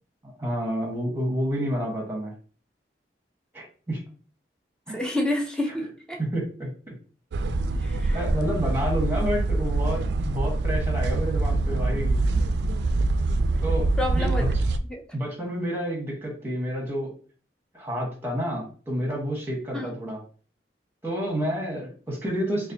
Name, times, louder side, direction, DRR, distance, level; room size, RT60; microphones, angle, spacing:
voice 1, 0.2-2.3 3.5-4.0 4.9-5.0 6.2-6.9 8.1-12.2 13.6-14.6 15.1-17.1 17.7-20.2 21.0-22.7, equal, 15° right, -1 dB, 1.1 m, -29 dB
voice 2, 4.9-6.2 7.8-8.2 14.0-14.5 14.9-15.0 19.7-19.9, left 1 dB, 5° left, 1 dB, 0.5 m, -29 dB
sound 1, 7.3-14.8, right 2 dB, 75° right, 0.3 m, -24 dB
4.0 x 2.4 x 2.7 m, 0.39 s
head